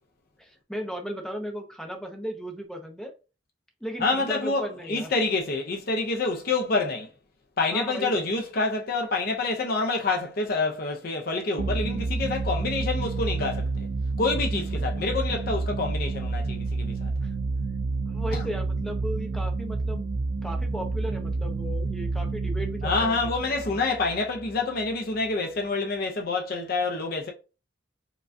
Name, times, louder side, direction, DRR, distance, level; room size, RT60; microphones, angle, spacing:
voice 1, 0.4-3.1 3.8-5.1 7.7-8.3 14.7-14.9 17.2-17.3 18.1-20.0 20.4-23.8, equal, 5° left, 0.6 m, -36 dB
voice 2, 4.0-7.1 7.6-13.9 14.2-17.1 18.3-18.4 22.8-27.3, left 3 dB, 50° left, 0.5 m, -27 dB
sound 1, 11.6-24.9, right 3 dB, 80° right, 0.5 m, -29 dB
4.7 x 2.3 x 2.5 m
head